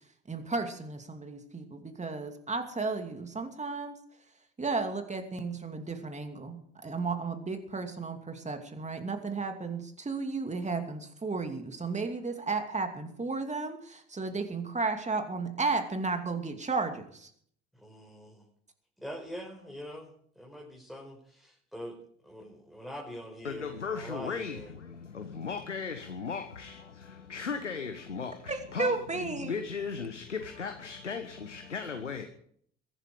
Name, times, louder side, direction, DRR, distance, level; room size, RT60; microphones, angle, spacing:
voice 1, 0.3-4.0 4.6-17.3 28.5-29.5, right 4 dB, 20° right, 2.7 m, -33 dB
voice 2, 17.7-18.4 19.0-24.7, equal, ahead, 4.9 m, -44 dB
voice 3, 23.4-32.3, left 5 dB, 90° left, 1.1 m, -37 dB
22.0 x 11.0 x 5.1 m
figure-of-eight pair, 55°, 35 cm